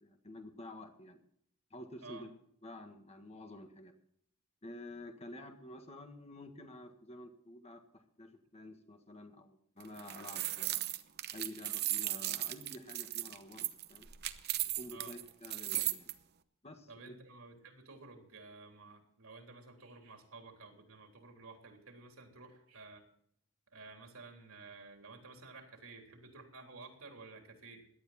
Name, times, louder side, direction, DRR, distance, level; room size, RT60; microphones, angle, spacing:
voice 1, 0.0-1.2 1.7-2.3 2.6-3.9 4.6-10.9 11.3-14.1 14.8-16.1 16.6-17.1, left 1 dB, 30° left, 5 dB, 1.6 m, -50 dB
sound 1, 9.8-16.1, right 14 dB, 50° right, 0.8 m, -36 dB
voice 2, 16.9-23.0 23.7-27.8, right 3 dB, 75° right, 3 dB, 3.6 m, -53 dB
17.5 x 11.5 x 4.3 m, 0.66 s
head